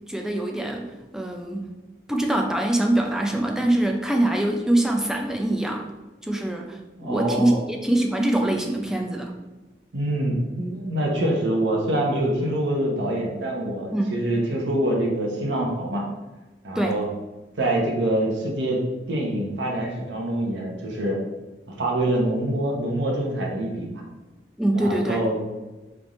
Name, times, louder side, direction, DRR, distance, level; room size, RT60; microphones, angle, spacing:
voice 1, 0.1-1.7 2.1-5.9 6.2-9.3 13.9-14.2 16.8-17.0 24.6-25.2, right 1 dB, 5° right, 2 dB, 0.4 m, -24 dB
voice 2, 7.0-7.6 9.9-16.0 16.6-17.0 17.6-18.8 19.1-21.2 21.8-23.9 24.7-25.5, right 1 dB, 90° right, -1 dB, 0.8 m, -25 dB
3.4 x 2.5 x 4.1 m, 1.1 s
head